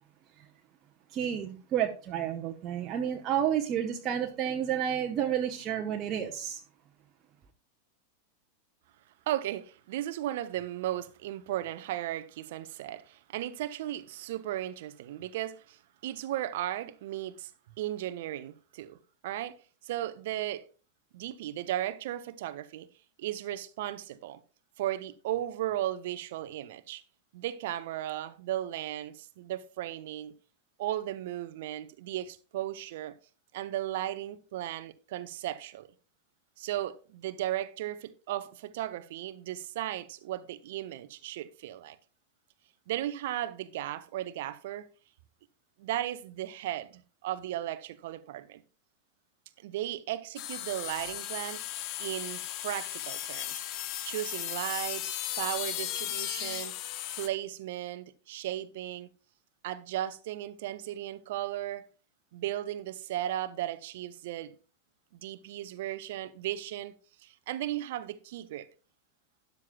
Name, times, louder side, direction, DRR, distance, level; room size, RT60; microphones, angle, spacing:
voice 1, 1.1-6.6, right 9 dB, 30° right, 1.0 m, -30 dB
voice 2, 9.3-17.5 17.8-19.0 19.2-19.6 19.8-20.6 21.1-22.9 23.2-24.4 24.8-27.0 27.3-30.3 30.8-33.1 33.5-35.9 36.6-42.0 42.9-44.9 45.8-48.6 49.6-51.6 52.0-53.6 54.0-56.7 57.2-59.1 59.6-61.8 62.3-64.5 65.2-66.9 67.2-68.7, right 13 dB, 55° right, 0.7 m, -36 dB
sound 1, 50.4-57.3, left 13 dB, 40° left, 0.8 m, -36 dB
13.0 x 10.5 x 2.3 m
figure-of-eight pair, 90°, 0 cm